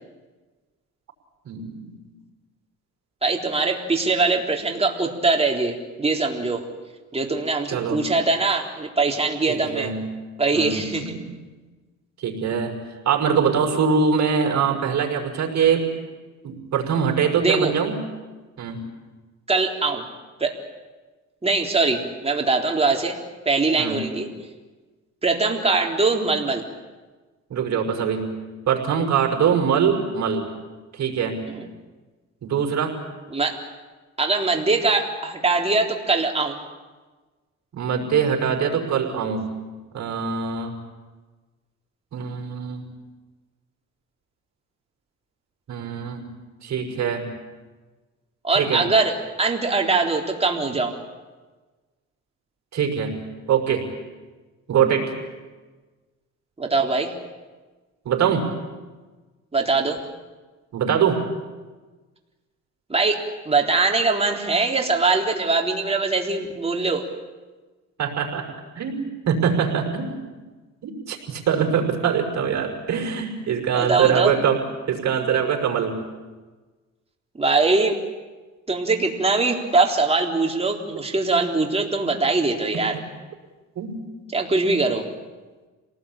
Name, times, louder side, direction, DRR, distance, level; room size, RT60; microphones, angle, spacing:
voice 1, 1.5-1.9 7.7-8.1 9.5-10.1 10.5-11.4 12.2-12.8 13.0-15.9 16.4-18.0 18.6-18.8 23.8-24.1 27.5-28.3 28.7-30.4 30.9-31.5 32.4-32.9 37.7-39.5 39.9-40.7 42.1-42.9 45.7-46.2 46.6-47.3 48.5-48.9 52.7-53.2 53.5-53.9 54.7-55.1 58.1-58.5 60.7-61.2 68.0-68.5 68.7-70.2 70.8-74.6 74.9-76.0 82.7-83.0 83.8-84.1, right 7 dB, 65° right, 2 dB, 5.6 m, -23 dB
voice 2, 3.2-6.6 7.1-9.9 10.4-11.2 17.4-17.7 19.5-20.0 20.4-20.5 21.4-23.2 23.5-24.3 25.2-26.6 31.5-31.7 33.3-33.5 34.2-36.6 48.4-51.0 56.6-57.1 59.5-60.0 62.9-67.0 73.7-74.3 77.3-78.0 78.7-83.0 84.3-85.1, right 3 dB, 20° right, 1 dB, 3.8 m, -22 dB
27.5 x 19.0 x 8.9 m, 1.3 s
cardioid pair, 90°, 30 cm